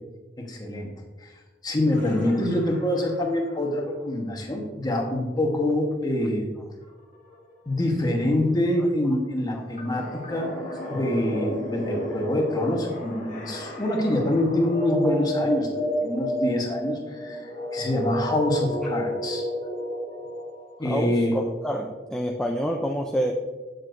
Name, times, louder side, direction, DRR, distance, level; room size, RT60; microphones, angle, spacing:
voice 1, 0.4-0.9 1.2-1.3 1.6-6.5 7.7-10.5 10.9-15.7 16.0-19.5 20.8-21.4, left 1 dB, 20° left, 1 dB, 1.1 m, -25 dB
sound 1, 1.9-3.8 6.8-6.9 7.1-20.8, equal, 45° left, 1.2 m, -32 dB
voice 2, 14.9-15.2 20.8-23.3, equal, 5° left, 0 dB, 0.4 m, -28 dB
7.7 x 7.2 x 2.5 m, 1.3 s
head